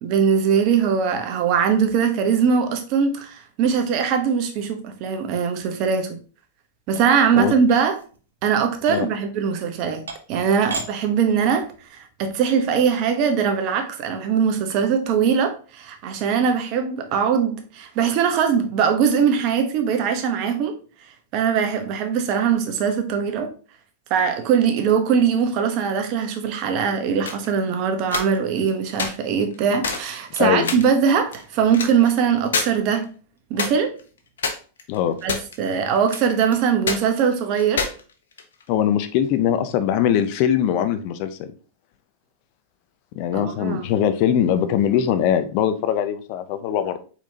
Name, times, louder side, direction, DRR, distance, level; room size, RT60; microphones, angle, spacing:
voice 1, 0.0-6.2 6.9-8.0 8.4-10.0 10.3-11.7 12.2-20.7 21.3-23.5 24.1-33.1 33.5-33.9 35.2-37.8 43.3-43.9, right 7 dB, 50° right, 1.0 m, -21 dB
sound 1, 6.9-8.2 8.8-9.0 9.7-9.8 10.1-10.4 10.7-10.9 11.3-11.7, right 3 dB, 90° right, 0.9 m, -34 dB
sound 2, 27.3-27.5 28.0-28.7 29.0-29.1 29.5-29.6 29.8-30.1 30.4-30.9 31.3-32.1 32.5-32.7 33.0-33.1 33.6-34.0 34.4-35.7 35.9-36.6 36.9-37.0 37.6-38.7, left 5 dB, 80° left, 0.8 m, -26 dB
voice 2, 30.4-30.8 34.9-35.2 38.7-41.5 43.1-47.0, left 9 dB, 55° left, 0.6 m, -21 dB
4.4 x 4.2 x 2.8 m
hypercardioid pair, 105°, 0 cm